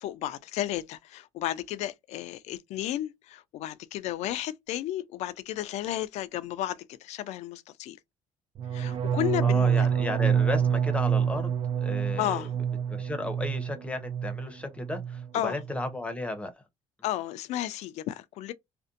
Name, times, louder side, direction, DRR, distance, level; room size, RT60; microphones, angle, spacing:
voice 1, 0.0-8.0 8.7-9.9 12.2-12.5 15.3-15.6 17.0-18.5, left 13 dB, 65° left, 0.4 m, -33 dB
sound 1, 8.6-14.5 14.8-15.3 15.6-16.0, right 8 dB, 45° right, 0.3 m, -27 dB
voice 2, 9.4-11.5 11.8-12.5 12.9-16.5, left 2 dB, 10° left, 0.7 m, -34 dB
2.6 x 2.1 x 2.4 m
cardioid pair, 115°, 12 cm